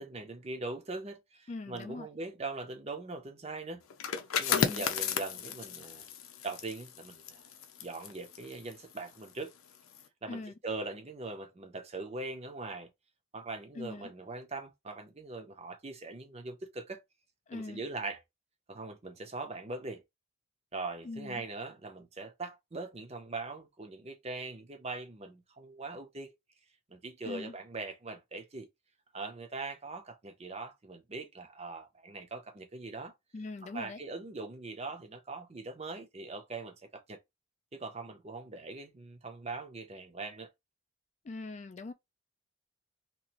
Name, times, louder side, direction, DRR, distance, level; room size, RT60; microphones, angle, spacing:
voice 1, 0.0-3.8 4.4-6.1 6.4-7.4 7.8-9.5 10.2-12.9 13.3-17.0 17.5-18.2 18.7-20.0 20.7-26.4 26.9-28.7 29.1-33.1 33.6-37.2 37.7-40.5, right 3 dB, 30° right, 0.6 m, -41 dB
voice 2, 1.5-2.1 4.5-4.8 10.3-10.5 13.8-14.1 17.5-17.8 21.0-21.4 27.2-27.5 33.3-34.0 41.2-41.9, left 3 dB, 35° left, 0.3 m, -41 dB
sound 1, 3.9-9.4 9.7-10.0, left 7 dB, 85° left, 0.6 m, -34 dB
2.9 x 2.5 x 2.9 m
head